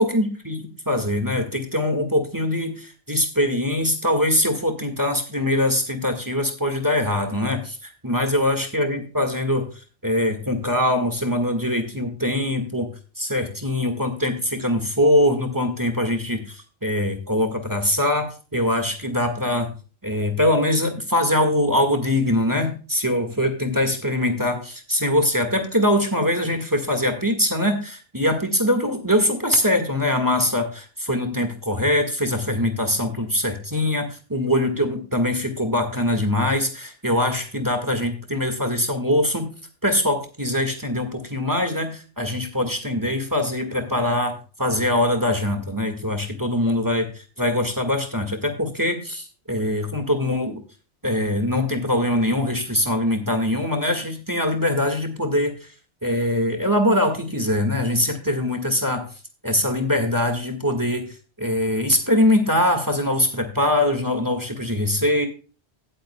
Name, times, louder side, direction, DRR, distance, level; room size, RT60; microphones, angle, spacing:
voice 1, 0.0-9.7 10.0-19.7 20.0-39.5 39.8-50.6 51.0-55.7 56.0-59.1 59.4-65.3, left 1 dB, 20° right, 5 dB, 1.7 m, -23 dB
17.0 x 8.0 x 2.2 m, 0.35 s
omnidirectional pair, 1.1 m